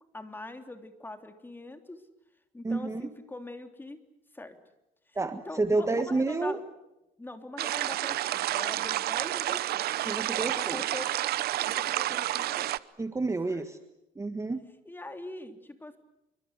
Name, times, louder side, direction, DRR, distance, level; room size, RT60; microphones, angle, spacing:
voice 1, 0.1-2.0 2.5-4.0 4.3-4.6 5.4-6.6 7.2-9.9 10.4-11.2 11.7-12.7 13.5-13.6 14.8-16.0, left 2 dB, 10° left, 7 dB, 3.2 m, -43 dB
voice 2, 2.6-3.1 5.1-6.6 10.0-10.8 13.0-13.8 14.1-14.6, right 3 dB, 15° right, 8 dB, 1.6 m, -29 dB
sound 1, 7.6-12.8, right 14 dB, 70° right, 0.9 m, -30 dB
28.0 x 24.5 x 8.2 m, 0.93 s
cardioid pair, 110°, 17 cm